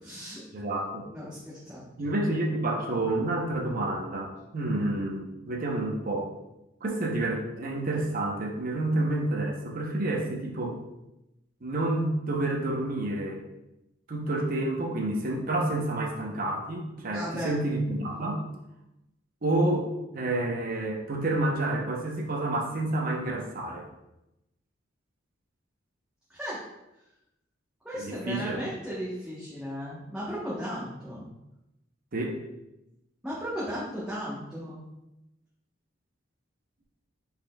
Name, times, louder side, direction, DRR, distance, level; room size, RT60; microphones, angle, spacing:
voice 1, 0.0-0.4 1.1-1.8 17.1-17.5 26.3-26.6 27.8-31.3 33.2-34.8, equal, 5° right, -10 dB, 1.0 m, -35 dB
voice 2, 0.5-1.1 2.0-6.3 6.8-10.8 11.6-13.4 14.1-18.4 19.4-23.9 27.9-28.6 32.1-32.4, right 2 dB, 45° right, 1 dB, 0.8 m, -29 dB
5.5 x 4.3 x 2.3 m, 0.92 s
head